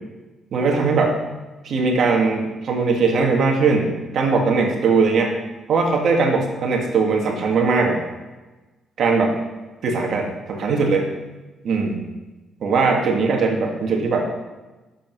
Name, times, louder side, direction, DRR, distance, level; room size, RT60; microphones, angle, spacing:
voice 1, 0.5-1.2 1.6-5.3 5.7-8.0 9.0-9.3 9.8-11.1 11.6-12.0 12.6-14.3, right 4 dB, 65° right, 2 dB, 2.0 m, -20 dB
8.7 x 7.4 x 6.2 m, 1.2 s
cardioid pair, 90°, 0 cm